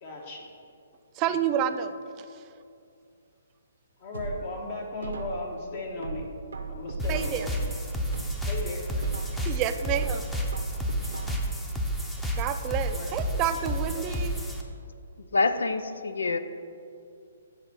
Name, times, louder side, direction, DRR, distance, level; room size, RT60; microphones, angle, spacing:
voice 1, 0.0-0.5 1.2-1.4 4.0-6.2 6.7-7.5 8.5-8.8 12.8-13.2 13.6-14.7, left 2 dB, 50° left, -1 dB, 1.3 m, -37 dB
voice 2, 1.2-2.4 7.1-7.5 9.5-10.3 12.3-14.3, right 9 dB, 30° right, 9 dB, 0.5 m, -29 dB
sound 1, 4.1-5.6 6.0-7.6 8.0-9.6 10.0-11.6 12.0-12.1, right 4 dB, 75° right, 0.9 m, -38 dB
sound 2, 7.0-14.6, equal, 5° left, 0.8 m, -31 dB
voice 3, 15.2-16.4, left 3 dB, 75° left, 10 dB, 0.5 m, -26 dB
8.0 x 4.3 x 6.9 m, 2.4 s
figure-of-eight pair, 135°, 0 cm